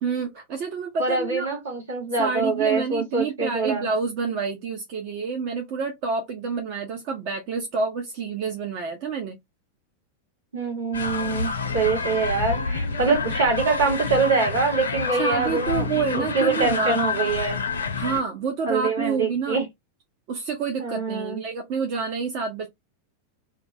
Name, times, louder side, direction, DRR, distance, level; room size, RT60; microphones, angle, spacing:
voice 1, 0.0-1.5 2.2-9.4 15.2-17.0 18.0-19.6 20.3-22.7, right 5 dB, 45° right, 0.5 m, -28 dB
voice 2, 1.0-3.9 10.5-15.9 16.1-17.6 18.6-19.6 20.8-21.4, right 4 dB, 70° right, 1.3 m, -24 dB
sound 1, 10.9-18.2, left 4 dB, 70° left, 0.4 m, -28 dB
2.3 x 2.2 x 2.6 m
figure-of-eight pair, 90°, 0 cm